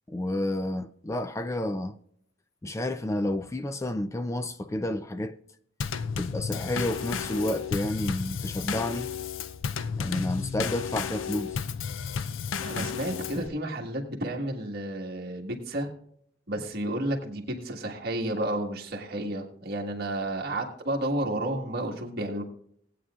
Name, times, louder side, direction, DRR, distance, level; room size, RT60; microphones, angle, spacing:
voice 1, 0.1-2.0 2.6-5.4 6.2-9.1 10.0-11.7, left 1 dB, 15° left, 0.3 m, -30 dB
Drum kit / Snare drum / Bass drum, 5.8-13.5, left 6 dB, 75° left, 0.5 m, -33 dB
voice 2, 12.6-15.9 16.5-22.4, right 1 dB, 50° right, 1.6 m, -31 dB
18.5 x 8.7 x 2.4 m
head